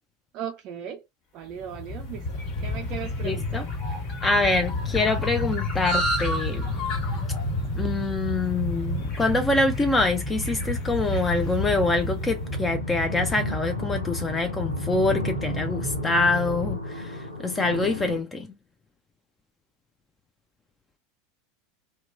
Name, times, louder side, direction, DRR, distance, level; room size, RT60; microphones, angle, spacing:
voice 1, 0.3-1.1 1.3-2.3 2.6-3.6, right 9 dB, 45° right, 0.3 m, -37 dB
Train, 1.5-16.7, left 2 dB, 60° left, 1.5 m, -31 dB
sound 1, 1.7-12.3, equal, 40° left, 1.0 m, -36 dB
voice 2, 3.2-3.7 4.2-6.7 7.8-18.5, left 2 dB, 15° left, 0.4 m, -25 dB
sound 2, 7.9-8.1 8.7-18.2, left 1 dB, 85° left, 0.5 m, -37 dB
2.9 x 2.2 x 2.3 m
figure-of-eight pair, 80°, 0 cm